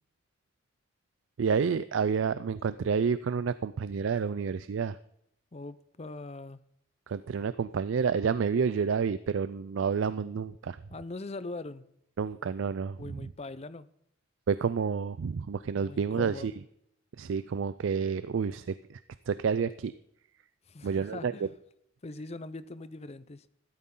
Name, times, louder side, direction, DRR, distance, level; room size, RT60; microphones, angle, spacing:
voice 1, 1.4-5.0 7.1-10.8 12.2-13.3 14.5-16.5 17.2-19.0 19.3-19.9 20.8-21.3, right 6 dB, 75° right, 0.4 m, -29 dB
voice 2, 5.5-6.7 10.9-11.9 13.0-13.9 15.8-16.5 20.7-21.5 22.0-23.5, left 2 dB, 35° left, 0.6 m, -41 dB
14.0 x 12.0 x 3.8 m
head